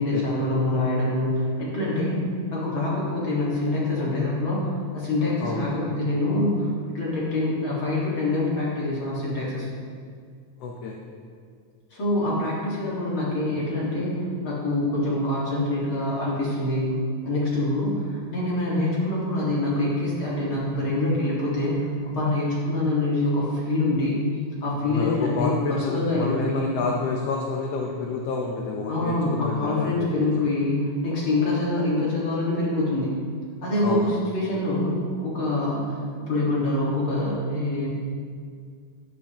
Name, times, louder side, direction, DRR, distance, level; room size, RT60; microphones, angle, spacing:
voice 1, 0.0-2.2 2.5-9.7 11.9-16.9 17.2-24.2 24.6-26.7 28.9-33.1 33.6-37.9, left 2 dB, 45° left, -6 dB, 2.2 m, -25 dB
voice 2, 5.4-5.7 10.6-11.0 24.8-30.1 33.8-34.1, left 4 dB, 80° left, 0 dB, 1.4 m, -29 dB
12.0 x 9.6 x 2.9 m, 2.1 s
omnidirectional pair, 3.8 m